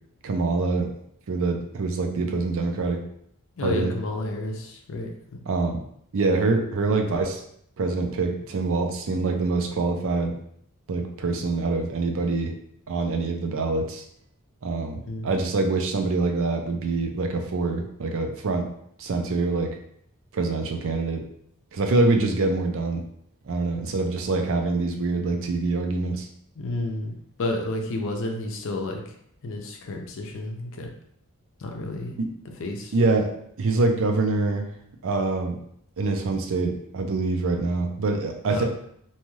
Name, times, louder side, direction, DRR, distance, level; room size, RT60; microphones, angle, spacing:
voice 1, 0.2-0.9 1.3-3.0 3.6-3.9 5.5-5.8 6.1-7.4 7.8-10.4 10.9-12.5 12.9-14.0 14.6-18.7 19.0-19.7 20.3-21.2 21.7-23.0 23.5-26.3 32.2-32.3 32.9-33.3 33.6-34.7 35.0-35.6 36.0-38.6, right 3 dB, 65° right, 4 dB, 0.5 m, -25 dB
voice 2, 3.6-5.4 6.9-7.2 15.1-15.3 26.6-27.1 27.4-29.2 29.4-30.9 31.6-32.2 32.6-33.0 38.5-38.6, left 2 dB, 60° left, 2 dB, 0.5 m, -31 dB
2.7 x 2.3 x 3.1 m, 0.69 s
head